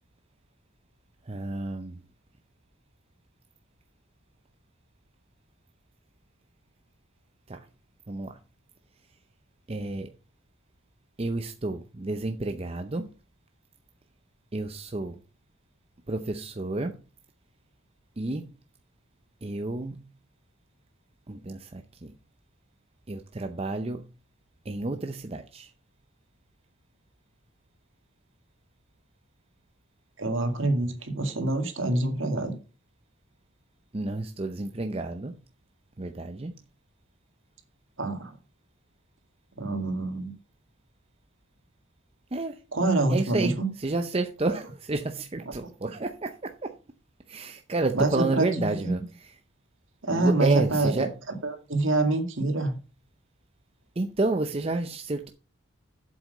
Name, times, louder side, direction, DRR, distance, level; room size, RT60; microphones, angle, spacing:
voice 1, 1.3-2.0 7.5-7.7 8.1-8.4 9.7-10.1 11.2-13.1 14.5-15.2 16.1-17.0 18.2-18.5 19.4-20.0 21.3-22.1 23.1-24.1 24.7-25.7 33.9-35.4 36.0-36.5 42.3-42.6 43.1-46.8 47.3-49.3 50.1-51.1 54.0-55.3, right 2 dB, 25° right, 0.6 m, -30 dB
voice 2, 30.2-32.6 38.0-38.3 39.6-40.3 42.7-43.7 47.9-48.8 50.0-51.1 51.4-52.8, right 2 dB, 60° right, 2.1 m, -26 dB
7.7 x 7.6 x 5.3 m
head